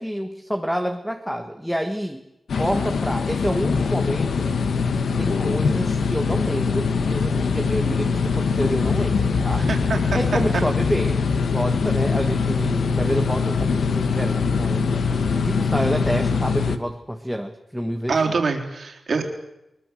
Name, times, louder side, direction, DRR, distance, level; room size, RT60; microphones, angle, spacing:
voice 1, 0.0-2.2 2.6-4.5 5.1-9.7 10.1-11.2 11.5-14.9 15.3-18.3, equal, ahead, 6 dB, 1.4 m, -28 dB
sound 1, 2.5-16.8, left 5 dB, 80° left, 1.6 m, -22 dB
voice 2, 9.6-10.4 18.1-19.2, right 4 dB, 55° right, 3 dB, 3.8 m, -25 dB
23.5 x 21.5 x 7.6 m, 0.89 s
wide cardioid pair, 160°, 0 cm